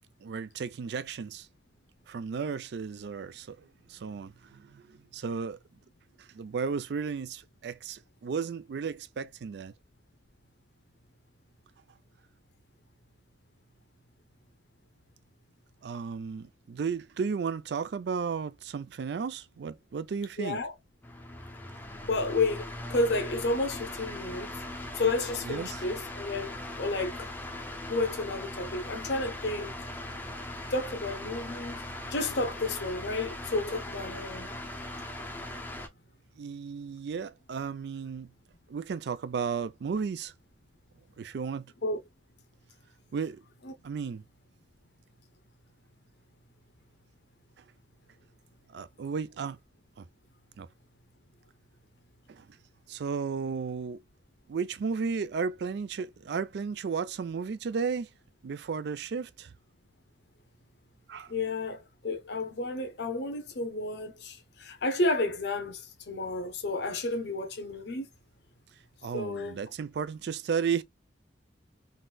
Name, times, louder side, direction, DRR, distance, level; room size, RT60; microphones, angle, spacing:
voice 1, 0.2-1.5 2.1-5.6 6.2-9.7 15.8-20.6 25.5-25.8 36.4-38.3 38.7-40.3 41.2-41.7 43.1-43.4 43.8-44.2 48.7-49.6 50.0-50.1 50.6-50.7 52.3-52.5 52.9-54.0 54.5-58.1 58.4-59.5 61.1-61.3 69.0-70.8, right 5 dB, 60° right, 0.3 m, -34 dB
voice 2, 20.4-20.7 22.0-27.3 27.9-29.7 30.7-31.8 32.1-34.5 41.8-42.0 43.6-43.7 61.3-68.1 69.1-69.6, left 2 dB, 60° left, 0.8 m, -31 dB
sound 1, 21.0-35.9, left 1 dB, 10° left, 0.5 m, -40 dB
3.9 x 2.6 x 2.2 m
head